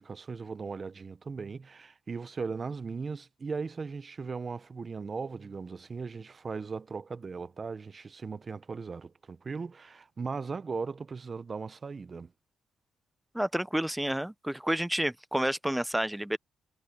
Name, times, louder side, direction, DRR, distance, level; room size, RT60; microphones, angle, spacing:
voice 1, 0.0-12.3, right 4 dB, 35° right, 1.0 m, -38 dB
voice 2, 13.3-16.4, right 1 dB, 5° right, 0.7 m, -30 dB
cardioid pair, 90°, 0 cm